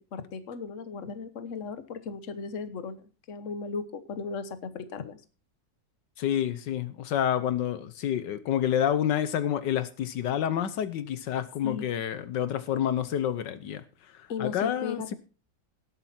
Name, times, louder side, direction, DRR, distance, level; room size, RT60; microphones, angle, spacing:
voice 1, 0.1-5.2 11.6-11.9 14.3-15.1, left 5 dB, 50° left, 12 dB, 1.4 m, -36 dB
voice 2, 6.2-13.8 14.4-15.1, left 10 dB, 80° left, 14 dB, 1.5 m, -28 dB
18.0 x 8.3 x 4.3 m, 0.34 s
omnidirectional pair, 1.9 m